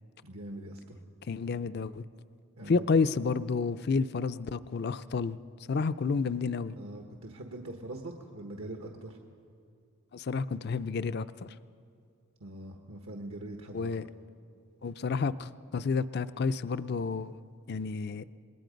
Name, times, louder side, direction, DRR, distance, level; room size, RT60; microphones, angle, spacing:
voice 1, 0.2-1.0 2.6-2.8 6.7-9.2 12.4-13.9, right 1 dB, 80° right, 2 dB, 1.3 m, -42 dB
voice 2, 1.3-2.1 2.7-5.4 5.7-6.8 10.1-11.5 13.7-14.0 14.8-17.4 17.7-18.2, left 4 dB, 50° left, 13 dB, 0.4 m, -30 dB
27.0 x 20.5 x 5.2 m, 2.5 s
head